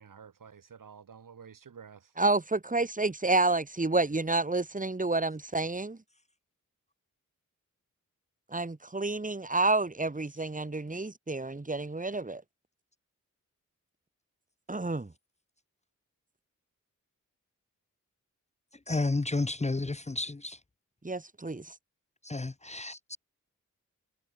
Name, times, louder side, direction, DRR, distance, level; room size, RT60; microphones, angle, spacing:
voice 1, 0.0-2.1, right 7 dB, 90° right, 3.1 m, -50 dB
voice 2, 2.2-6.0 8.5-12.4 14.7-15.1 21.0-21.7, right 2 dB, 25° right, 2.1 m, -29 dB
voice 3, 18.9-20.6 22.2-23.2, left 2 dB, 20° left, 0.9 m, -31 dB
cardioid pair, 50°, 31 cm